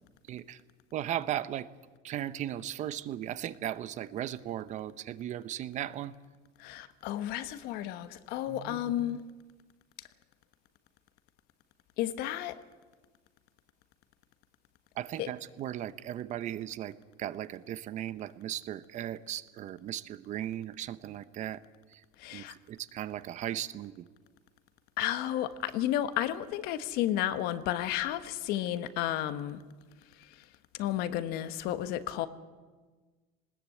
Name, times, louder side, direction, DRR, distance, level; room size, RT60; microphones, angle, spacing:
voice 1, 0.3-0.6 0.9-1.7 2.0-6.1 8.5-9.1 15.0-16.9 17.2-21.6 22.3-23.9, right 12 dB, 45° right, 0.9 m, -37 dB
voice 2, 6.6-9.3 12.0-12.6 15.2-15.3 22.2-22.5 25.0-29.6 30.8-32.3, left 12 dB, 65° left, 1.3 m, -32 dB
20.0 x 18.5 x 8.5 m
cardioid pair, 130°, 17 cm